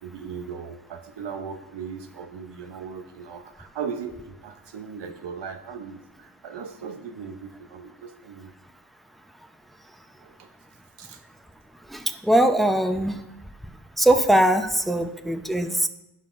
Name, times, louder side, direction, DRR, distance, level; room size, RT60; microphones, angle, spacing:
voice 1, 0.0-8.5 10.2-10.5 11.0-11.2, right 6 dB, 85° right, 6 dB, 0.8 m, -38 dB
voice 2, 11.9-13.2 14.0-15.9, right 1 dB, ahead, 6 dB, 0.8 m, -21 dB
15.5 x 5.7 x 2.6 m, 0.91 s
cardioid pair, 50°, 41 cm